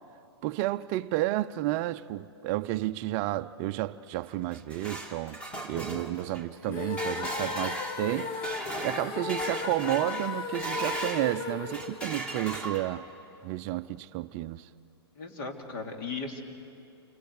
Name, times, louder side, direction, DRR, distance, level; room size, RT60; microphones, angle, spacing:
voice 1, 0.4-5.4 5.6-8.3 8.8-13.1 13.4-14.7, right 16 dB, 35° right, 0.5 m, -31 dB
sound 1, 4.3-11.3 11.7-13.1, right 2 dB, 10° left, 2.1 m, -37 dB
sound 2, 6.7-12.8, left 5 dB, 35° left, 1.2 m, -36 dB
voice 2, 15.1-16.4, left 4 dB, 50° left, 3.2 m, -37 dB
29.0 x 26.0 x 4.9 m
hypercardioid pair, 125°, 14 cm